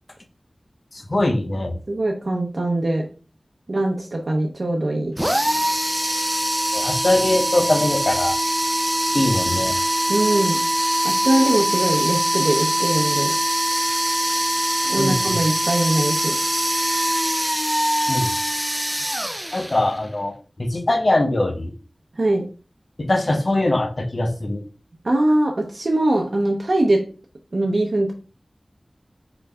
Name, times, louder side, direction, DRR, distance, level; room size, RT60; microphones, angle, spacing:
voice 1, 1.1-1.8 6.7-8.4 9.1-9.7 15.0-15.4 18.1-18.3 19.5-21.7 23.0-24.6, left 1 dB, 55° left, 5 dB, 0.8 m, -22 dB
voice 2, 1.9-3.1 3.7-5.1 10.1-10.6 11.0-13.3 14.8-16.4 22.1-22.5 25.0-27.0 27.5-28.1, right 1 dB, 65° right, 0 dB, 0.7 m, -21 dB
sound 1, 5.2-20.1, right 1 dB, 10° right, 0.6 m, -22 dB
3.9 x 3.3 x 3.5 m, 0.36 s
wide cardioid pair, 55°, 0 cm